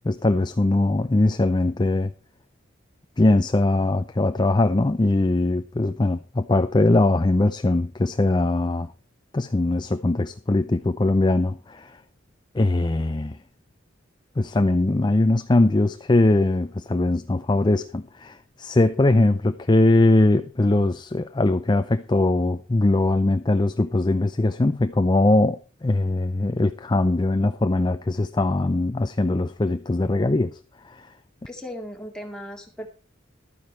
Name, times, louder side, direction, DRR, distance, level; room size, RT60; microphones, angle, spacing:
voice 1, 0.0-2.1 3.2-8.9 9.3-12.0 12.5-13.4 14.4-30.6 30.8-31.1, left 2 dB, 20° left, 0.5 m, -21 dB
voice 2, 31.5-32.9, equal, 5° left, 2.3 m, -37 dB
12.5 x 9.4 x 4.6 m
head